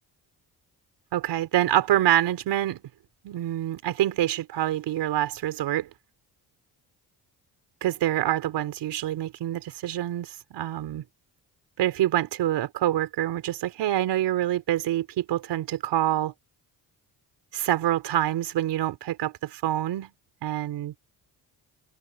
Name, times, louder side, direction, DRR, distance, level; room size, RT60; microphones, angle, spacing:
voice 1, 1.1-2.8 3.2-5.9 7.8-11.0 11.8-16.3 17.5-20.1 20.4-20.9, right 12 dB, 80° right, 4.2 m, -26 dB
cardioid pair, 90°, 41 cm